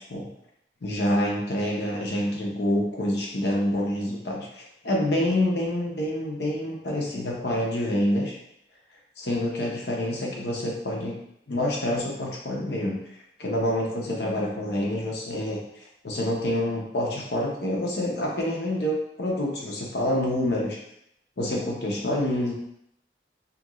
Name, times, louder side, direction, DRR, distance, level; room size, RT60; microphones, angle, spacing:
voice 1, 0.8-8.3 9.2-11.1 11.5-13.0 13.4-15.6 16.0-20.8 21.4-22.5, left 1 dB, 65° left, -2 dB, 0.8 m, -27 dB
2.9 x 2.5 x 2.9 m, 0.74 s
head